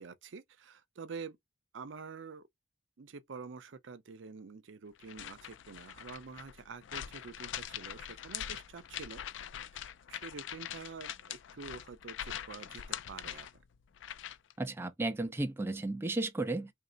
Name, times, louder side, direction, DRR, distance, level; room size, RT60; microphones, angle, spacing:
voice 1, 0.0-1.4 1.7-2.5 3.0-9.2 9.7-13.5, right 5 dB, 70° right, 0.5 m, -47 dB
sound 1, 5.0-14.5, left 10 dB, 65° left, 0.4 m, -43 dB
voice 2, 14.6-16.7, right 2 dB, 10° right, 0.3 m, -34 dB
3.1 x 2.7 x 3.7 m
head